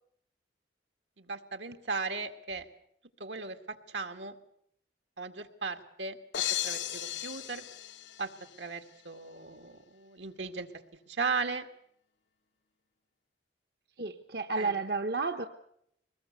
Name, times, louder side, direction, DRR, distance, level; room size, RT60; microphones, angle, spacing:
voice 1, 1.2-2.7 3.2-4.3 5.2-6.2 6.6-7.6 8.2-8.3 8.6-10.7 11.1-11.7 14.5-14.8, right 4 dB, 80° right, 6 dB, 2.1 m, -36 dB
sound 1, 6.3-8.6, left 12 dB, 85° left, 1.0 m, -35 dB
voice 2, 14.0-15.5, right 3 dB, 55° right, 7 dB, 1.0 m, -32 dB
23.5 x 20.5 x 8.1 m, 0.72 s
head